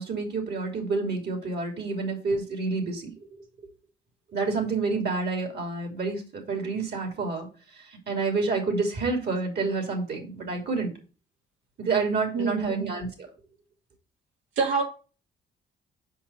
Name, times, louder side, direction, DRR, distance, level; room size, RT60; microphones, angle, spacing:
voice 1, 0.0-3.1 4.3-7.5 8.1-10.9 11.8-13.1, right 4 dB, 55° right, 3.0 m, -28 dB
voice 2, 12.3-12.9 14.6-14.8, right 5 dB, 80° right, 2.3 m, -26 dB
5.8 x 5.4 x 5.5 m
cardioid pair, 90°, 20 cm